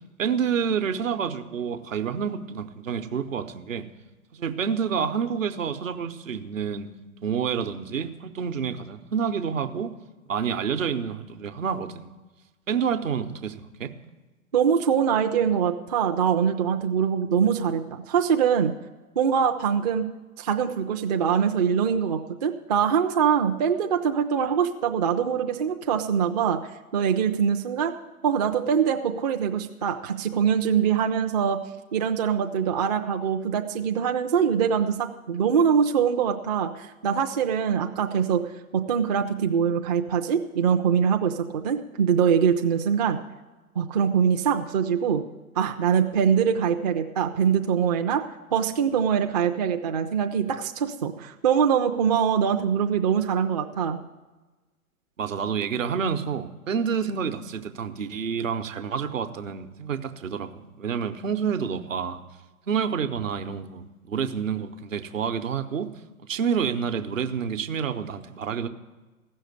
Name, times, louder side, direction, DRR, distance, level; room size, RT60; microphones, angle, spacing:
voice 1, 0.2-3.9 4.3-6.9 7.2-9.9 10.3-12.1 12.7-13.9 55.2-62.2 62.7-65.9 66.3-68.7, right 7 dB, 60° right, 9 dB, 1.0 m, -28 dB
voice 2, 14.5-18.7 19.2-20.1 20.4-27.9 28.2-31.6 31.9-43.2 43.8-45.2 45.6-48.2 48.5-54.0, right 7 dB, 30° right, 4 dB, 0.5 m, -23 dB
15.5 x 6.4 x 8.2 m, 1.2 s
figure-of-eight pair, 115°, 44 cm